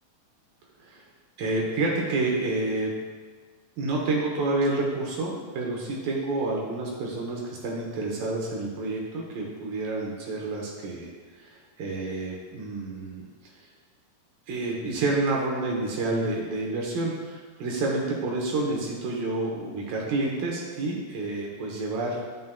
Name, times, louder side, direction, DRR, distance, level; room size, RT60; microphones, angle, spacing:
voice 1, 1.4-2.9 3.8-11.1 11.3-13.2 13.6-13.7 14.5-22.2, right 2 dB, 75° right, -2 dB, 2.7 m, -29 dB
9.4 x 9.4 x 2.3 m, 1.4 s
omnidirectional pair, 4.2 m